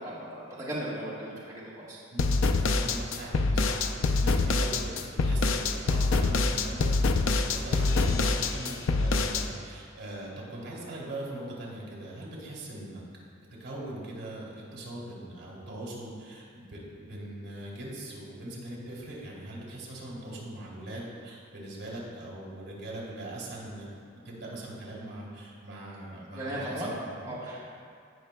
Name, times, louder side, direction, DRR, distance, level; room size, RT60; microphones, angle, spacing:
voice 1, 0.0-2.0 26.3-26.9 27.2-27.7, right 1 dB, 15° right, -8 dB, 1.3 m, -36 dB
voice 2, 2.1-3.8 4.1-4.9 5.2-13.0 13.6-23.9 24.1-27.4, right 1 dB, 60° right, -4 dB, 2.1 m, -41 dB
sound 1, 2.2-9.4, left 3 dB, 80° left, 0.5 m, -25 dB
17.0 x 5.9 x 2.2 m, 2.2 s
head